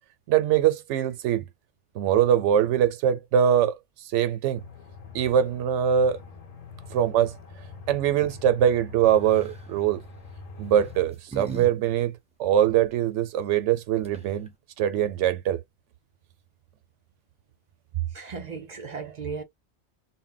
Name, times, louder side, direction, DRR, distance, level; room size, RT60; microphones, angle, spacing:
voice 1, 0.3-1.4 1.9-3.8 4.1-4.6 5.1-6.2 6.9-7.3 7.9-10.0 10.6-12.1 12.4-14.5 14.8-15.6, right 9 dB, 85° right, 0.9 m, -22 dB
Aircraft, 4.5-11.0, left 5 dB, 45° left, 0.5 m, -44 dB
sound 1, 9.2-9.7 10.6-11.7 12.0-12.1 13.7-13.8 14.0-14.5, right 5 dB, 5° right, 0.6 m, -39 dB
voice 2, 17.9-19.4, right 8 dB, 45° right, 0.6 m, -33 dB
2.1 x 2.1 x 3.8 m
omnidirectional pair, 1.2 m